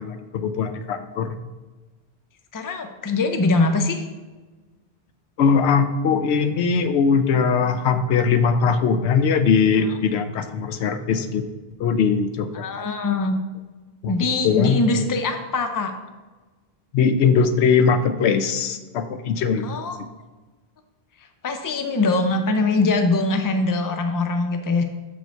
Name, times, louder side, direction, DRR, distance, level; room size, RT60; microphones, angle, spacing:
voice 1, 0.0-1.3 5.4-11.4 11.8-12.9 14.0-14.1 14.4-15.1 16.9-19.7, left 6 dB, 85° left, 10 dB, 0.9 m, -20 dB
voice 2, 2.5-4.0 9.7-9.9 12.5-13.4 14.1-15.9 19.6-20.0 21.4-24.8, left 3 dB, 25° left, 6 dB, 0.5 m, -22 dB
6.6 x 5.4 x 4.5 m, 1.3 s
omnidirectional pair, 1.1 m